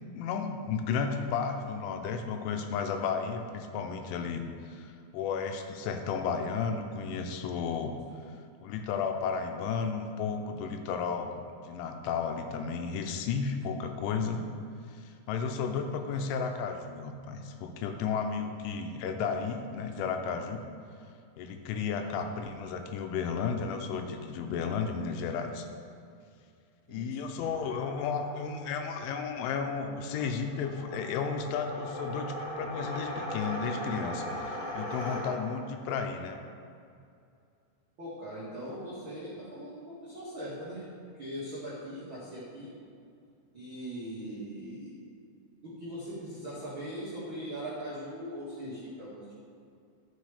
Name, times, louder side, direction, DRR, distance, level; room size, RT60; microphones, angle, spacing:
voice 1, 0.0-7.9 8.6-11.3 11.6-14.5 14.9-20.6 21.4-25.7 26.9-36.4, left 5 dB, 85° left, 5 dB, 3.1 m, -33 dB
sound 1, 27.4-35.7, left 1 dB, 30° left, 2.9 m, -39 dB
voice 2, 38.0-40.8 41.1-42.7 43.5-44.9 45.6-49.3, equal, 80° right, -9 dB, 1.1 m, -40 dB
12.5 x 6.2 x 5.0 m, 2.4 s
omnidirectional pair, 5.6 m